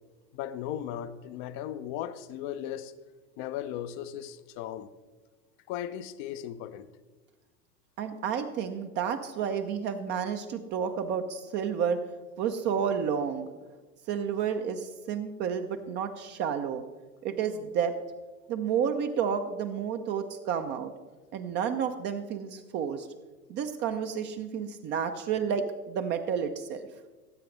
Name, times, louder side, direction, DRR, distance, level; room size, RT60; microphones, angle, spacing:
voice 1, 0.3-2.9 3.4-4.9 5.7-6.9, left 11 dB, 25° left, 0.5 m, -37 dB
voice 2, 8.0-12.0 12.4-13.5 14.1-16.8 17.2-18.0 18.5-20.9 21.3-23.1 23.5-26.9, right 7 dB, 25° right, 0.5 m, -30 dB
18.0 x 8.4 x 3.1 m
figure-of-eight pair, 90°, 47 cm